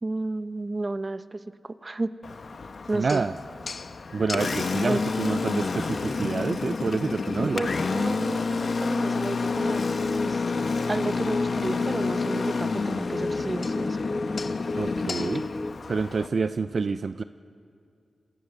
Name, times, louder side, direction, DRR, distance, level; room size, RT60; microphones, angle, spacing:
voice 1, 0.0-2.1 2.9-3.2 4.9-5.0 7.5-9.9 10.2-10.4 10.9-14.0, right 2 dB, 35° right, 13 dB, 0.8 m, -31 dB
Engine, 2.2-16.3, left 4 dB, 65° left, 1.1 m, -29 dB
voice 2, 2.9-3.3 4.1-7.6 14.7-15.4 15.9-17.2, right 4 dB, 60° right, 11 dB, 0.5 m, -28 dB
sound 1, 9.5-15.7, left 2 dB, 35° left, 1.1 m, -32 dB
27.5 x 19.5 x 6.7 m, 2.4 s
cardioid pair, 60°, 0 cm